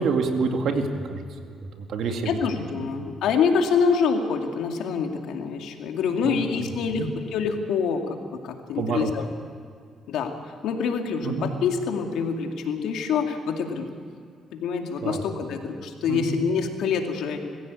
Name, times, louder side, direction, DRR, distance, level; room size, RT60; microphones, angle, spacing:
voice 1, 0.0-2.4 6.2-6.7 7.0-7.1 8.7-9.1 11.2-11.5 15.0-15.2 16.1-16.3, right 4 dB, 75° right, 4 dB, 2.3 m, -27 dB
voice 2, 2.3-9.3 10.1-10.3 10.6-13.9 14.5-17.4, left 6 dB, 85° left, 3 dB, 2.3 m, -26 dB
22.0 x 15.5 x 8.4 m, 2.3 s
cardioid pair, 90°, 0 cm